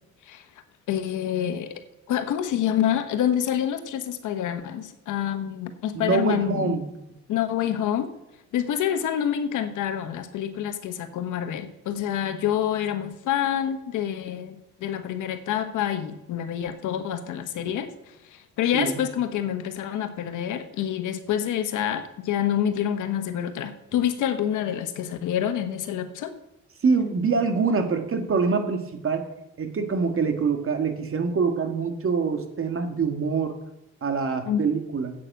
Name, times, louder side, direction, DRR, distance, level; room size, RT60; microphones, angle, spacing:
voice 1, 0.9-1.8 2.1-6.8 7.3-8.1 8.5-17.9 18.3-26.3 34.4-34.6, left 10 dB, 85° left, 9 dB, 1.3 m, -27 dB
voice 2, 5.9-6.9 17.7-17.8 18.7-19.0 26.8-29.2 29.6-33.5 34.0-35.1, right 5 dB, 45° right, 6 dB, 2.0 m, -25 dB
9.9 x 8.5 x 7.8 m, 0.86 s
cardioid pair, 90°, 30 cm